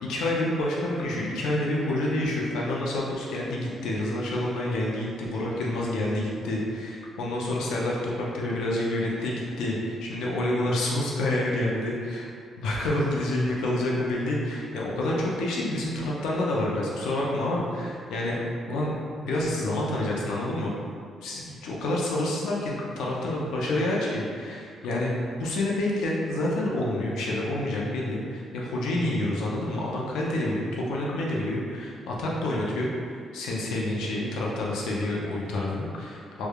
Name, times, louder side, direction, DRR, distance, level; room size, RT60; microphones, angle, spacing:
voice 1, 0.1-12.3 12.6-18.4 18.7-18.9 19.2-20.8 21.2-25.1 25.4-36.5, left 1 dB, 85° left, -4 dB, 0.5 m, -28 dB
3.3 x 2.2 x 2.3 m, 2.3 s
cardioid pair, 90°, 0 cm